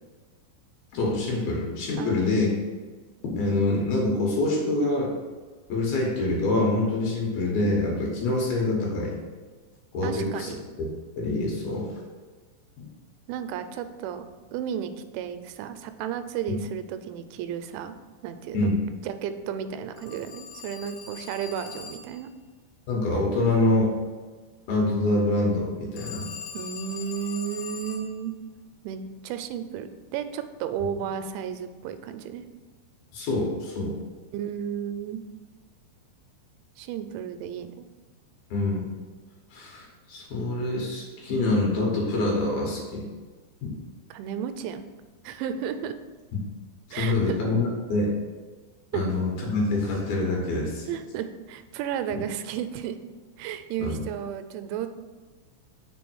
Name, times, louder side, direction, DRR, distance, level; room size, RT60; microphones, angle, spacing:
voice 1, 0.9-2.5 3.3-5.1 5.7-9.1 9.9-10.5 11.2-11.9 12.8-12.9 18.5-18.8 22.9-23.9 24.7-26.3 33.1-34.0 38.5-38.8 39.5-43.1 43.6-43.8 46.9-48.1 48.9-50.9 52.1-52.2 53.8-54.0, left 2 dB, 65° left, -2 dB, 2.8 m, -25 dB
voice 2, 2.0-2.7 10.0-10.6 13.3-14.2 14.5-18.0 18.2-18.7 19.0-22.3 26.5-28.3 28.8-32.4 34.3-35.2 36.8-37.8 44.1-44.8 45.2-46.0 46.9-47.4 48.9-49.0 50.9-53.0 53.4-54.9, right 8 dB, 90° right, 9 dB, 2.9 m, -33 dB
Telephone, 20.0-22.3 26.0-28.2, left 6 dB, 85° left, 3.2 m, -41 dB
6.9 x 3.5 x 6.1 m, 1.4 s
omnidirectional pair, 5.2 m